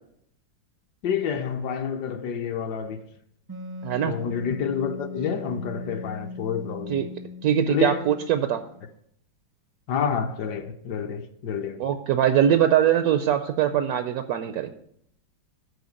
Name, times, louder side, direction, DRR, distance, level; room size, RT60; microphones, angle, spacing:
voice 1, 1.0-3.0 4.0-7.0 7.7-8.0 9.9-11.8, left 7 dB, 70° left, 1.2 m, -28 dB
Wind instrument woodwind instrument, 3.5-8.9, left 2 dB, 30° right, 0.4 m, -39 dB
voice 2, 3.8-4.1 6.9-7.1 7.4-8.6 11.8-14.7, right 10 dB, 75° right, 0.8 m, -22 dB
9.7 x 4.2 x 6.3 m
omnidirectional pair, 2.1 m